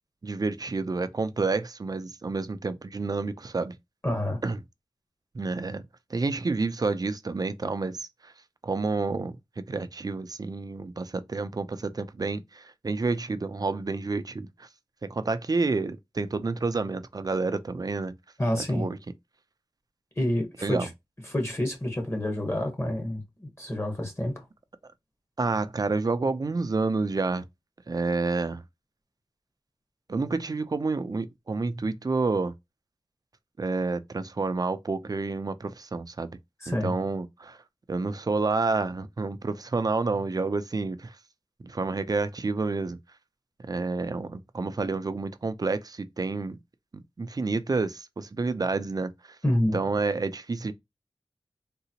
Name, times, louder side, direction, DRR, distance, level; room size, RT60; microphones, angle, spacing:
voice 1, 0.2-3.7 4.4-4.6 5.3-5.8 6.1-8.3 8.6-14.7 15.0-18.2 18.7-19.0 20.6-20.9 25.4-27.5 27.9-28.6 30.1-32.5 33.6-36.4 36.7-37.6 37.9-41.2 41.6-43.0 43.6-46.6 46.9-49.1 49.7-50.7, right 3 dB, 40° right, 0.4 m, -29 dB
voice 2, 4.0-4.4 18.4-18.9 20.2-20.9 21.3-24.5 36.6-36.9 49.4-49.8, left 1 dB, 25° left, 1.0 m, -28 dB
3.7 x 2.0 x 2.8 m
wide cardioid pair, 60°, 10 cm